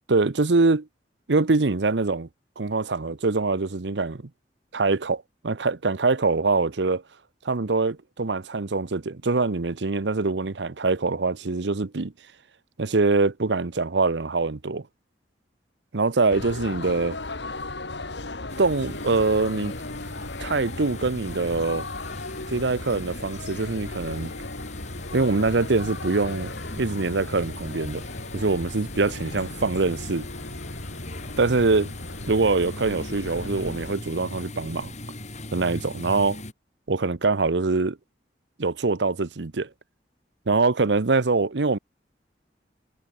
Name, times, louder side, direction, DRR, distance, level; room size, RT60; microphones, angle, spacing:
voice 1, 0.1-0.9 1.3-2.3 2.6-4.2 4.7-7.0 7.4-12.1 12.8-14.9 15.9-17.2 18.6-19.7 20.4-21.9 22.5-24.3 25.1-28.1 28.3-30.3 31.4-31.9 32.3-34.9 35.5-36.4 36.9-38.0 38.6-39.7 40.5-41.8, right 3 dB, 75° right, 0.9 m, -24 dB
sound 1, 16.3-33.9, left 2 dB, 75° left, 2.7 m, -36 dB
sound 2, 18.5-36.5, left 2 dB, 40° left, 7.1 m, -40 dB
head